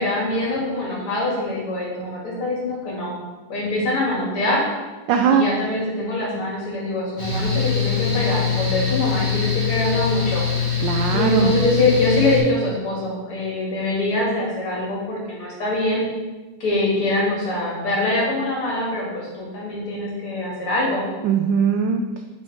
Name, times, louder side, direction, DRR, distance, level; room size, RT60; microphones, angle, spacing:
voice 1, 0.0-3.1 3.5-4.7 5.3-10.4 11.1-16.0 16.6-21.0, left 2 dB, 80° left, -4 dB, 3.3 m, -23 dB
voice 2, 5.1-5.5 10.8-11.5 21.2-22.1, right 6 dB, 75° right, 5 dB, 1.1 m, -20 dB
Mechanical fan, 7.2-12.4, left 6 dB, 15° left, 1.8 m, -23 dB
7.1 x 5.1 x 5.0 m, 1.2 s
omnidirectional pair, 2.4 m